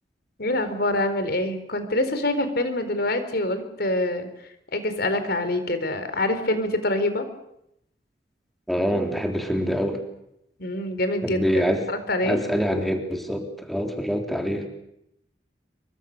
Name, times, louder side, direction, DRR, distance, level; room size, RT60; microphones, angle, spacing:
voice 1, 0.4-4.3 4.7-7.3 10.6-11.6 11.9-12.4, left 1 dB, 65° left, 9 dB, 4.3 m, -25 dB
voice 2, 8.7-10.0 11.2-11.8 12.2-14.7, equal, ahead, 3 dB, 3.5 m, -25 dB
26.5 x 24.0 x 6.8 m, 0.79 s
head